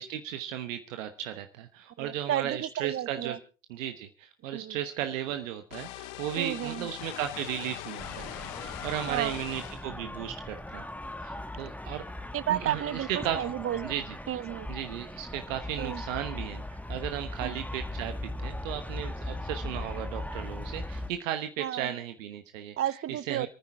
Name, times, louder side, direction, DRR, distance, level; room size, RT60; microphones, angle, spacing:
voice 1, 0.0-3.4 3.7-8.3 8.6-10.8 11.2-12.0 12.5-13.4 13.8-14.2 14.7-22.7 23.1-23.5, right 11 dB, 75° right, 1.2 m, -35 dB
voice 2, 2.0-3.4 4.5-4.8 6.4-6.9 9.1-9.3 12.3-13.9 14.3-14.7 15.8-16.0 17.4-17.6 21.6-21.9 22.8-23.5, right 11 dB, 35° right, 0.8 m, -32 dB
sound 1, 5.7-9.9, left 15 dB, 65° left, 1.1 m, -41 dB
sound 2, 8.0-21.1, left 1 dB, 5° left, 1.5 m, -39 dB
28.5 x 9.7 x 3.6 m
hypercardioid pair, 65°, 39 cm